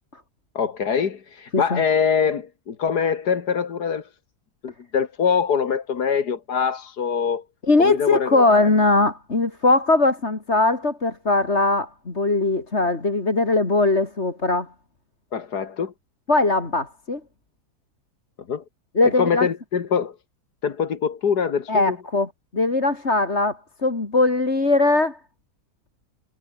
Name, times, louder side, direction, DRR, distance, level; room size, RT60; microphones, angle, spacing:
voice 1, 0.6-4.1 4.6-7.4 7.8-8.6 15.3-15.9 18.5-18.6 19.0-20.2 20.6-22.0, left 6 dB, 80° left, 2.2 m, -24 dB
voice 2, 7.7-14.7 16.3-17.2 18.9-19.5 21.7-25.2, left 2 dB, 40° left, 3.3 m, -20 dB
omnidirectional pair, 1.7 m